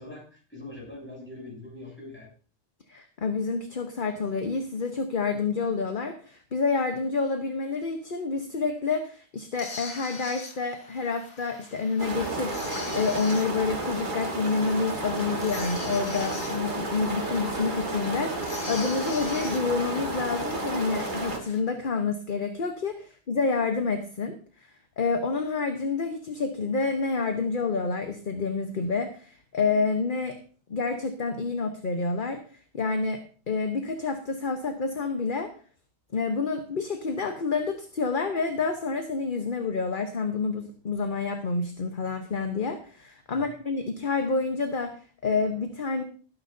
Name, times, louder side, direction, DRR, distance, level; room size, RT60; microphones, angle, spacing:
voice 1, 0.0-2.3 43.3-43.5, left 2 dB, 10° left, -3 dB, 7.4 m, -43 dB
voice 2, 2.9-24.3 25.0-30.4 30.7-32.4 32.7-35.5 36.1-45.0 45.2-46.0, left 4 dB, 50° left, 6 dB, 1.2 m, -28 dB
sound 1, 9.5-21.6, left 3 dB, 85° left, 2.1 m, -43 dB
sound 2, 12.0-21.4, right 2 dB, 45° right, 1.9 m, -32 dB
18.5 x 10.5 x 2.7 m, 0.39 s
omnidirectional pair, 1.2 m